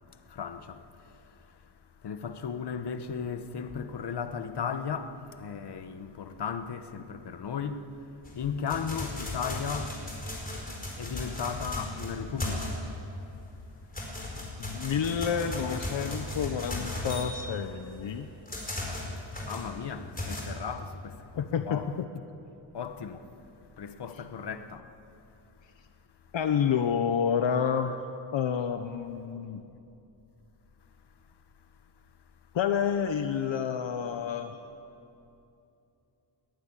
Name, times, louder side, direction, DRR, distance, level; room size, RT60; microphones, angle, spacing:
voice 1, 0.3-0.8 2.0-7.8 8.3-10.0 11.0-12.8 19.4-21.9 22.7-23.3 23.8-24.9, left 6 dB, 60° left, 1.3 m, -35 dB
sound 1, 8.2-13.1 13.5-20.4, left 1 dB, 20° left, 4.6 m, -36 dB
voice 2, 14.6-18.3 21.4-22.0 26.3-27.9 28.3-29.6 32.5-34.5, left 7 dB, 75° left, 1.0 m, -29 dB
20.0 x 19.5 x 9.9 m
wide cardioid pair, 170°, 46 cm